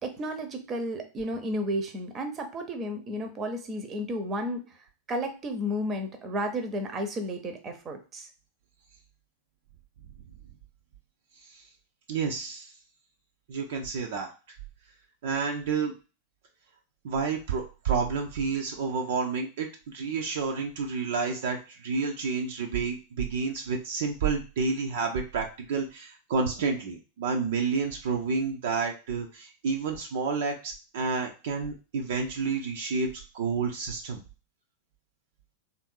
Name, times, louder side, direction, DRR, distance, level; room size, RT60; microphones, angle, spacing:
voice 1, 0.0-4.6 5.1-8.3, equal, 25° right, 6 dB, 0.8 m, -32 dB
voice 2, 12.1-12.7 13.5-14.3 15.2-15.9 17.0-34.2, right 5 dB, 55° right, 2 dB, 0.6 m, -30 dB
3.5 x 2.7 x 4.5 m, 0.33 s
figure-of-eight pair, 90°, 0 cm